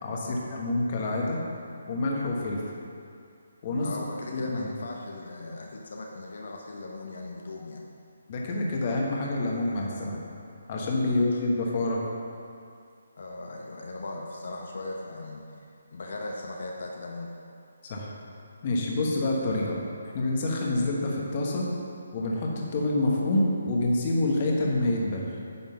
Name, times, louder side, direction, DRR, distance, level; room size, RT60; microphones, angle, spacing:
voice 1, 0.0-1.4 1.9-2.6 3.6-3.9 4.3-4.7 8.3-10.2 10.7-12.0 17.9-18.1 18.6-19.8 20.1-21.7 22.1-25.3, left 2 dB, 30° left, -2 dB, 1.1 m, -27 dB
voice 2, 3.8-7.8 11.1-11.4 13.2-17.3, left 2 dB, 65° left, 0 dB, 0.8 m, -38 dB
9.6 x 3.7 x 5.7 m, 2.4 s
hypercardioid pair, 165°, 0 cm